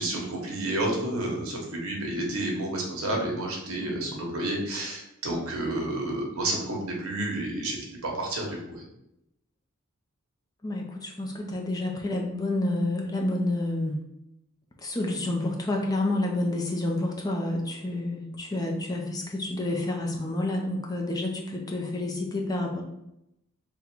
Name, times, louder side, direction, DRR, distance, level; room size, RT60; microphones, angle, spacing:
voice 1, 0.0-8.8, right 1 dB, 75° right, 0 dB, 0.9 m, -30 dB
voice 2, 3.8-4.1 10.6-14.0 14.8-22.8, left 1 dB, 15° left, 1 dB, 0.4 m, -29 dB
3.8 x 2.1 x 4.3 m, 0.85 s
head